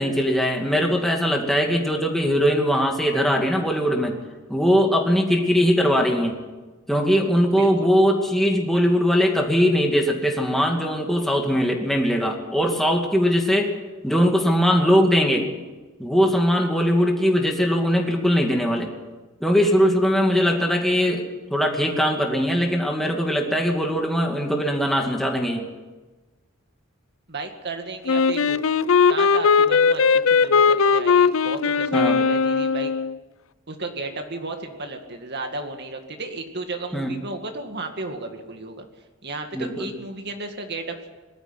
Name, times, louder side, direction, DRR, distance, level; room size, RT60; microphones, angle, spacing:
voice 1, 0.0-4.2 4.5-6.4 6.9-13.7 14.0-15.5 16.0-18.9 19.4-25.7 31.9-32.2 36.9-37.1 39.5-39.9, equal, ahead, 1 dB, 2.4 m, -21 dB
voice 2, 7.6-7.9 27.3-28.6 29.1-30.0 30.3-32.9 33.7-38.9 39.2-41.0, right 3 dB, 55° right, 5 dB, 2.2 m, -33 dB
Wind instrument woodwind instrument, 28.1-33.1, left 5 dB, 70° left, 0.6 m, -19 dB
20.0 x 13.0 x 10.0 m, 1.2 s
head